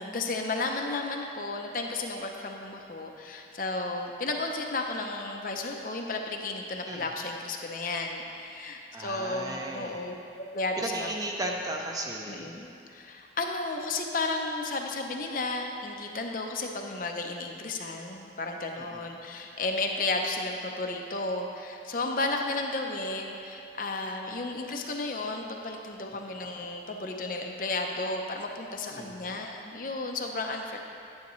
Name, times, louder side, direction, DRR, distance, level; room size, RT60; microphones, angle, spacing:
voice 1, 0.0-11.1 12.3-30.8, left 2 dB, 50° left, 2 dB, 0.6 m, -33 dB
voice 2, 8.9-10.0 10.8-12.5 18.8-19.1 26.1-26.3 28.9-29.2, right 1 dB, 20° right, 0 dB, 0.7 m, -36 dB
9.7 x 9.6 x 3.1 m, 2.6 s
head